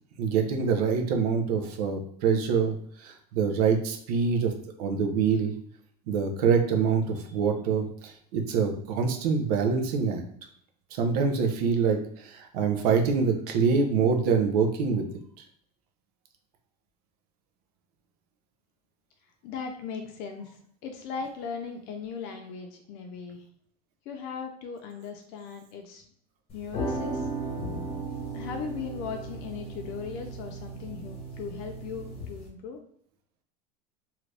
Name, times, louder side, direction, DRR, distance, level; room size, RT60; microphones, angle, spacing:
voice 1, 0.2-4.5 4.8-5.5 6.1-10.2 10.9-15.0, right 5 dB, 80° right, 4 dB, 0.8 m, -25 dB
voice 2, 19.4-23.4 24.1-26.0 26.5-27.3 28.3-32.8, left 6 dB, 55° left, 5 dB, 0.6 m, -38 dB
sound 1, 26.5-32.5, right 2 dB, 30° left, 1.0 m, -36 dB
2.9 x 2.5 x 3.3 m, 0.65 s
supercardioid pair, 140°, 20 cm